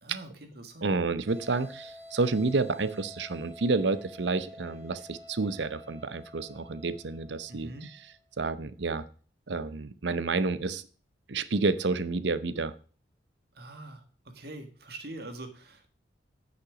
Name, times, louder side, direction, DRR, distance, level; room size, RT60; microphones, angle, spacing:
voice 1, 0.0-0.9 7.5-7.9 13.5-15.9, right 2 dB, 55° right, 6 dB, 1.7 m, -44 dB
voice 2, 0.8-7.7 8.4-9.1 9.5-10.8 11.3-12.7, right 3 dB, 70° right, 13 dB, 0.7 m, -29 dB
sound 1, 1.3-8.2, left 1 dB, 15° right, 3.3 m, -50 dB
10.0 x 6.1 x 4.9 m, 0.39 s
head